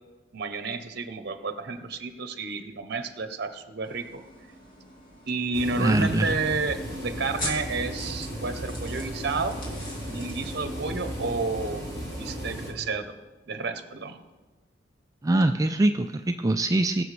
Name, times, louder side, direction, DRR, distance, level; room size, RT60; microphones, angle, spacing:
voice 1, 0.3-4.2 5.3-9.6 10.1-11.8 12.2-13.1 13.5-14.2 16.9-17.0, right 3 dB, 60° right, 9 dB, 0.8 m, -31 dB
sound 1, 3.8-12.1, left 1 dB, 50° left, 2.9 m, -43 dB
sound 2, 5.5-12.7, equal, 20° left, 3.0 m, -35 dB
voice 2, 5.8-6.4 15.2-17.0, right 2 dB, 20° right, 6 dB, 0.3 m, -23 dB
20.5 x 6.8 x 3.3 m, 1.2 s
head